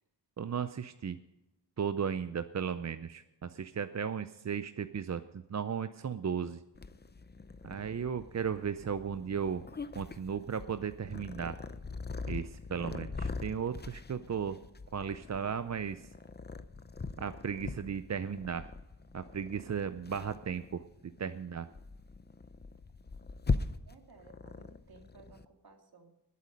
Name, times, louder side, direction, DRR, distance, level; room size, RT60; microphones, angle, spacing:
voice 1, 0.4-1.2 1.8-6.6 7.6-9.6 9.9-11.6 12.3-14.6 14.9-16.1 17.2-18.7 19.1-20.8 21.2-21.7, right 7 dB, 40° right, 11 dB, 0.5 m, -35 dB
Purr, 6.7-25.4, left 4 dB, 25° left, 0.6 m, -41 dB
voice 2, 23.5-26.1, right 4 dB, 60° right, 3 dB, 2.4 m, -58 dB
20.5 x 8.2 x 5.2 m, 0.96 s
wide cardioid pair, 105°, 42 cm